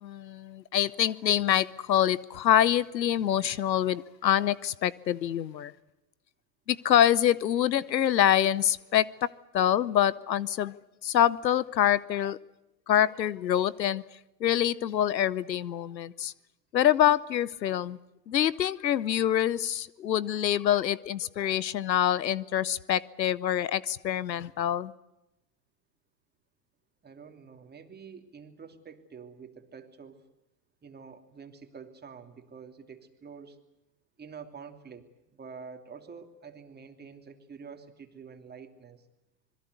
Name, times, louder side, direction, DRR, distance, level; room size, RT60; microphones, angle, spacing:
voice 1, 0.0-5.7 6.7-9.3 9.5-10.8 11.0-12.4 12.9-14.0 14.4-16.3 16.7-18.0 18.3-24.9, left 11 dB, 90° left, 21 dB, 0.9 m, -25 dB
voice 2, 27.0-30.2 30.8-33.6 34.2-39.0, right 6 dB, 20° right, 6 dB, 3.1 m, -47 dB
26.0 x 22.0 x 8.2 m, 0.94 s
hypercardioid pair, 95°, 49 cm